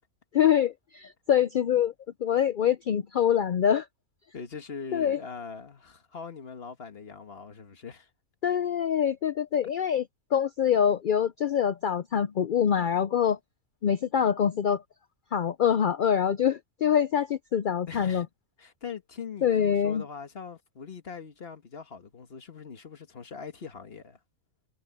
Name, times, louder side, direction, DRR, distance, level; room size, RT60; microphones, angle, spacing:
voice 1, 0.3-1.9 2.2-3.9 4.9-5.2 8.4-10.0 10.3-13.4 13.8-14.8 15.3-18.2 19.4-20.0, left 8 dB, 75° left, 0.4 m, -25 dB
voice 2, 4.3-8.1 17.9-18.3 18.6-24.2, left 6 dB, 45° left, 1.6 m, -42 dB
omnidirectional pair, 1.5 m